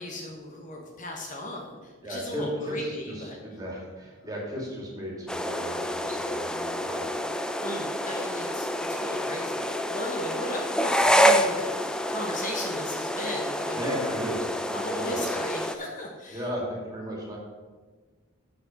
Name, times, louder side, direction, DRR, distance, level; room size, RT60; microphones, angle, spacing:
voice 1, 0.0-3.4 4.2-4.3 7.6-14.2 14.7-16.5, left 1 dB, 35° left, 0 dB, 1.1 m, -37 dB
voice 2, 2.0-7.1 13.7-15.3 16.3-17.4, equal, 15° right, -3 dB, 2.4 m, -35 dB
sound 1, 5.3-15.8, equal, 5° left, 0.4 m, -27 dB
6.8 x 6.0 x 7.0 m, 1.4 s
head